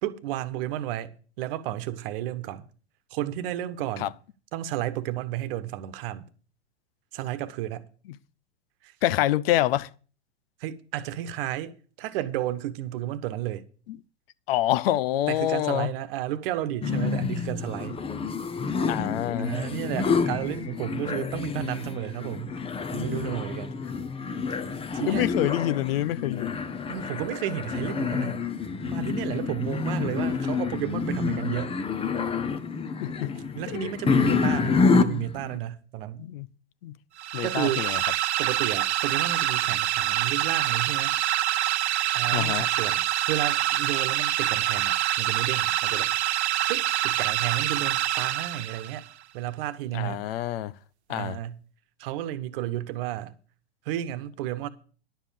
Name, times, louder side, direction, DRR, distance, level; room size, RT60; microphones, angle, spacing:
voice 1, 0.0-2.7 3.1-4.1 4.5-6.3 7.1-7.9 8.8-8.9 10.6-13.6 15.3-18.0 19.4-22.6 22.9-23.8 24.5-24.6 24.9-25.3 26.9-28.4 28.8-31.8 33.5-36.2 37.4-37.9 38.4-41.2 42.1-46.2 46.7-49.0 49.3-50.2 51.1-51.6 52.0-53.4 53.8-54.7, right 12 dB, 55° right, 1.2 m, -32 dB
voice 2, 9.0-9.9 14.5-15.9 17.0-17.3 18.9-19.5 25.1-26.6 33.0-33.3 33.7-33.9 36.2-36.5 36.8-37.0 37.3-38.0 42.3-42.7 49.9-50.7 51.1-51.4, left 13 dB, 60° left, 0.7 m, -26 dB
sound 1, 16.8-35.6, left 5 dB, 15° left, 0.9 m, -28 dB
sound 2, 37.2-49.0, right 12 dB, 80° right, 0.7 m, -26 dB
11.0 x 7.2 x 6.8 m
hypercardioid pair, 105°, 33 cm